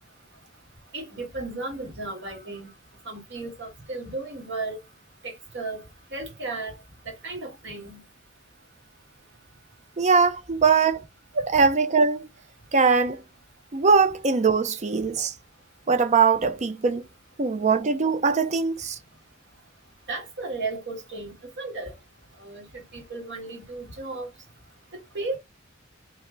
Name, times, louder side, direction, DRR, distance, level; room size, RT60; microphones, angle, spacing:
voice 1, 0.9-2.7 3.0-4.8 5.2-5.9 6.1-6.8 7.0-8.0 20.1-21.9 22.4-24.3 24.9-25.4, right 3 dB, 60° right, 1.6 m, -34 dB
voice 2, 10.0-11.0 11.3-12.3 12.7-13.2 13.7-15.3 15.9-17.0 17.4-19.0, right 5 dB, 35° right, 0.5 m, -21 dB
3.3 x 2.7 x 3.8 m
head